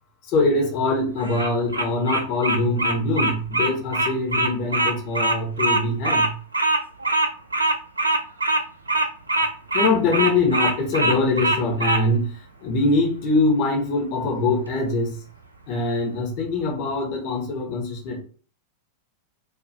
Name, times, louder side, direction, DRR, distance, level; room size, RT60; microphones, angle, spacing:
voice 1, 0.2-6.4 9.7-15.2 15.7-18.2, left 2 dB, 40° left, 0 dB, 0.7 m, -23 dB
Bird vocalization bird call bird song, 1.2-12.0, right 2 dB, 80° right, 0.3 m, -22 dB
2.4 x 2.1 x 2.5 m, 0.40 s
figure-of-eight pair, 90°, 0 cm